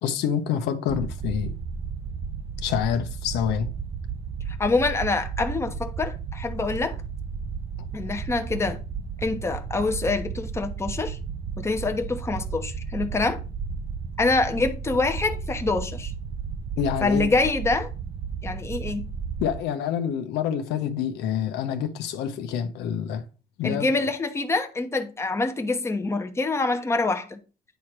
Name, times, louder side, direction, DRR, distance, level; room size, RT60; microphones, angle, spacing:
voice 1, 0.0-1.5 2.6-3.7 16.8-17.3 19.4-23.2 23.6-23.9, left 8 dB, 85° left, 1.0 m, -27 dB
sound 1, 0.9-19.6, right 6 dB, 35° right, 0.6 m, -33 dB
voice 2, 4.6-7.0 7.9-8.8 9.2-11.2 11.6-13.4 14.2-16.1 17.0-17.9 18.4-19.1 23.6-27.4, left 3 dB, 15° left, 1.0 m, -25 dB
9.3 x 3.3 x 6.0 m
cardioid pair, 110°, 17 cm